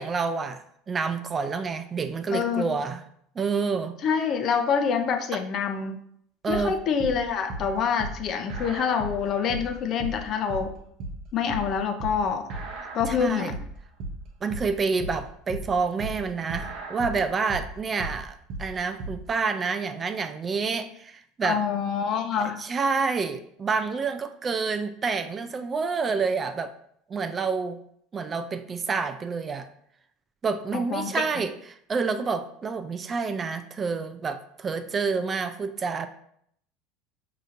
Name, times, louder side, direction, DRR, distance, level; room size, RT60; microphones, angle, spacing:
voice 1, 0.0-3.0 3.4-4.0 5.3-5.4 6.4-6.8 13.1-13.5 14.4-21.6 22.4-26.7 27.1-27.8 28.1-29.7 30.4-36.1, right 4 dB, 30° right, 10 dB, 0.3 m, -28 dB
voice 2, 2.3-2.7 4.0-6.0 6.5-10.7 11.3-12.5 12.9-13.5 21.4-22.6 30.7-31.2, left 6 dB, 50° left, 7 dB, 0.5 m, -26 dB
sound 1, 6.5-19.3, right 2 dB, 55° right, 0.8 m, -36 dB
4.8 x 2.8 x 2.5 m, 0.68 s
hypercardioid pair, 85°, 0 cm